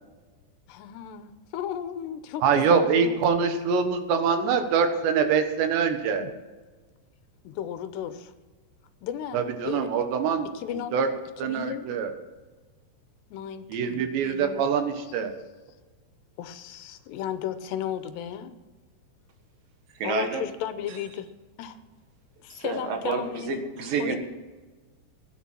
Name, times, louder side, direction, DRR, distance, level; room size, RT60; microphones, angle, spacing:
voice 1, 0.7-3.2 6.2-6.3 7.4-8.3 9.0-9.9 10.5-11.0 11.4-11.9 13.3-14.7 16.4-18.6 20.0-21.3 21.6-21.8 22.4-23.5 24.0-24.2, left 9 dB, 80° left, 10 dB, 3.0 m, -34 dB
voice 2, 2.4-6.2 9.3-10.5 10.9-11.1 11.4-12.1 13.7-15.3, right 6 dB, 85° right, 7 dB, 3.6 m, -24 dB
voice 3, 20.0-20.4 22.5-24.2, right 4 dB, 60° right, 4 dB, 3.1 m, -29 dB
16.5 x 10.0 x 6.2 m, 1.3 s
omnidirectional pair, 4.9 m